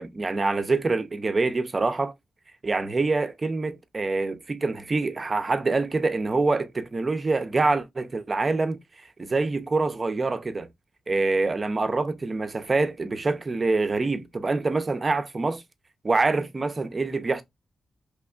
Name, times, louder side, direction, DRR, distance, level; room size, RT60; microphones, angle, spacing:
voice 1, 0.0-2.1 2.6-8.8 9.2-10.7 11.1-15.6 16.0-17.4, right 3 dB, 25° right, 0.4 m, -25 dB
3.3 x 3.0 x 2.3 m
wide cardioid pair, 155°, 0 cm